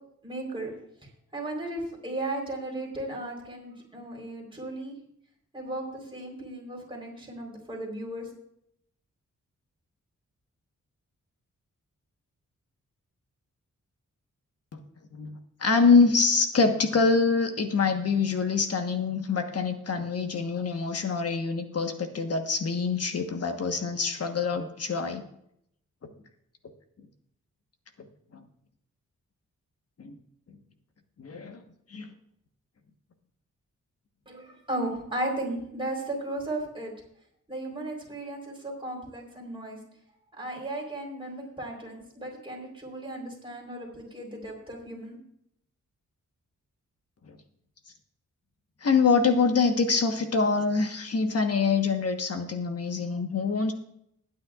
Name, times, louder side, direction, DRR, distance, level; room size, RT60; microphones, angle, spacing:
voice 1, 0.2-0.7 1.3-5.0 5.5-8.3 34.3-36.9 37.5-39.8 40.4-45.1, right 1 dB, 15° right, -1 dB, 4.0 m, -35 dB
voice 2, 15.1-25.2 26.0-26.1 28.3-28.4 30.0-30.2 31.2-31.6 31.9-32.1 47.3-47.4 48.8-53.7, left 4 dB, 50° left, 5 dB, 1.3 m, -25 dB
20.5 x 9.6 x 2.4 m, 0.72 s
wide cardioid pair, 145°, 30 cm